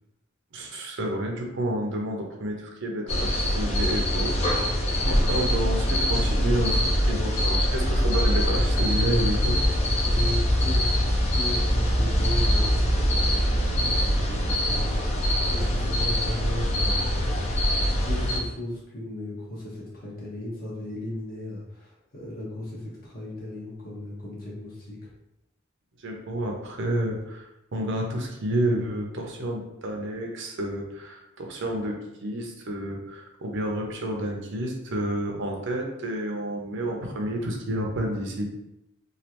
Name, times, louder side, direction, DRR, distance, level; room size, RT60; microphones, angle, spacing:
voice 1, 0.5-4.8 5.1-9.6 26.0-38.5, right 1 dB, 60° right, 1 dB, 0.6 m, -30 dB
sound 1, 3.1-18.4, equal, 30° left, 0.4 m, -23 dB
voice 2, 9.9-17.6 18.0-25.1, left 1 dB, 45° left, -5 dB, 1.1 m, -37 dB
3.1 x 2.4 x 2.9 m, 0.88 s
head